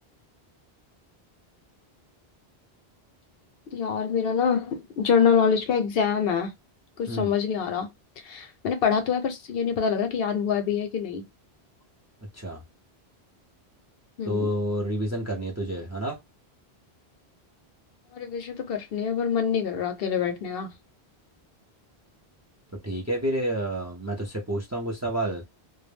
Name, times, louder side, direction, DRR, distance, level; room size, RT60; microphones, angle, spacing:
voice 1, 3.7-6.5 7.0-7.9 8.2-11.2 14.2-14.5 18.1-20.7, left 6 dB, 70° left, 0.7 m, -25 dB
voice 2, 14.3-16.2 22.8-25.4, right 1 dB, 20° right, 0.5 m, -29 dB
2.2 x 2.1 x 3.2 m
omnidirectional pair, 1.1 m